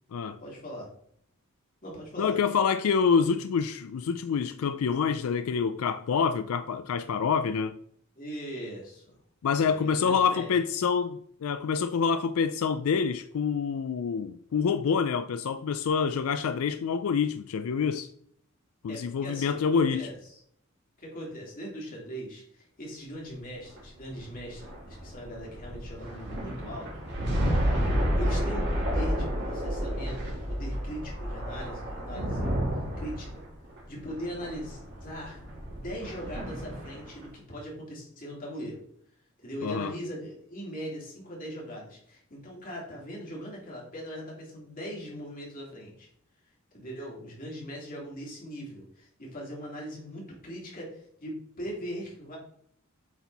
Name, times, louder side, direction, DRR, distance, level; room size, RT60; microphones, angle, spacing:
voice 1, 0.4-0.9 1.8-2.4 8.1-9.2 9.6-10.5 18.9-20.4 21.0-27.5 27.9-32.6 33.0-33.4 33.9-35.4 35.8-38.8 39.4-46.1 46.7-52.4, equal, 40° left, 2.9 m, -40 dB
voice 2, 2.2-7.8 9.4-18.1 18.8-20.1 39.6-39.9, left 6 dB, 80° left, 0.4 m, -27 dB
sound 1, 23.6-37.2, equal, 50° right, 2.2 m, -31 dB
8.2 x 4.4 x 4.1 m
head